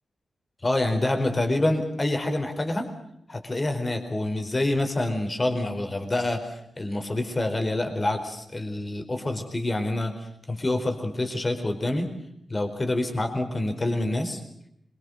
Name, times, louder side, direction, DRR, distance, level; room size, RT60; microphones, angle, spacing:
voice 1, 0.6-2.9 3.3-12.1 12.5-14.4, left 1 dB, 20° left, 5 dB, 4.5 m, -27 dB
26.5 x 24.0 x 6.6 m, 0.75 s
wide cardioid pair, 155°, 0 cm